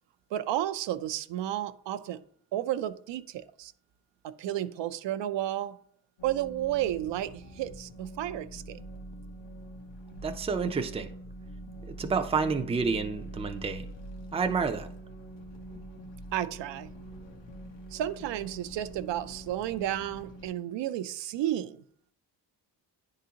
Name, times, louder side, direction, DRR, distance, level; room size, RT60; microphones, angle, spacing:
voice 1, 0.3-2.2 2.5-3.7 4.2-5.8 6.2-8.8 16.3-16.9 17.9-21.8, right 12 dB, 75° right, 11 dB, 0.5 m, -32 dB
sound 1, 6.2-20.5, right 1 dB, 80° left, 1.1 m, -44 dB
voice 2, 10.2-11.1 12.0-13.9 14.3-14.9, right 5 dB, 15° right, 5 dB, 0.4 m, -29 dB
9.9 x 3.8 x 2.8 m, 0.62 s
cardioid pair, 115°, 43 cm